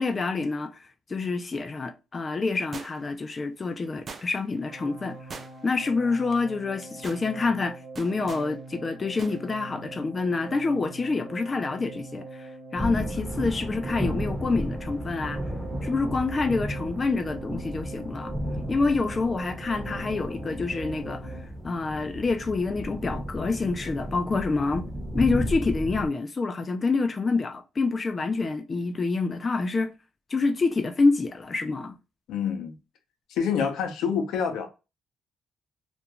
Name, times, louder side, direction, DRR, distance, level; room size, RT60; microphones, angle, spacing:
voice 1, 0.0-5.2 5.6-15.4 15.8-18.3 18.7-24.9 25.1-29.9 30.3-31.9, left 3 dB, 30° left, 0.3 m, -27 dB
sound 1, 2.7-3.2 4.1-4.6 5.3-5.8 6.1-6.3 6.8-7.3 8.0-8.5 9.2-9.4 9.7-9.8, right 4 dB, 40° right, 0.4 m, -42 dB
sound 2, 4.6-21.4, right 3 dB, 85° right, 1.0 m, -43 dB
sound 3, 12.8-26.1, equal, 5° right, 0.8 m, -34 dB
voice 2, 32.3-32.7 33.3-34.7, left 7 dB, 85° left, 0.6 m, -27 dB
2.4 x 2.1 x 2.9 m
cardioid pair, 90°, 0 cm